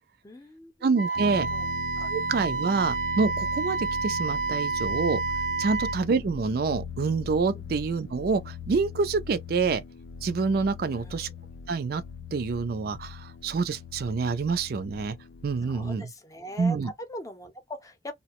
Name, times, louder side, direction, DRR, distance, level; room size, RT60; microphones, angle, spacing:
voice 1, 0.2-1.7 1.9-2.1 5.6-5.8 7.5-7.7 10.8-11.3 15.6-18.1, left 1 dB, 20° left, 0.6 m, -42 dB
voice 2, 0.8-1.5 2.1-5.2 5.6-9.8 10.2-11.3 11.7-12.0 12.3-15.2 15.4-16.1 16.6-16.9, right 4 dB, 60° right, 0.4 m, -27 dB
Wind instrument woodwind instrument, 1.0-6.0, right 4 dB, 90° right, 0.7 m, -29 dB
sound 1, 1.1-15.9, left 6 dB, 80° left, 0.4 m, -40 dB
2.8 x 2.0 x 2.8 m
head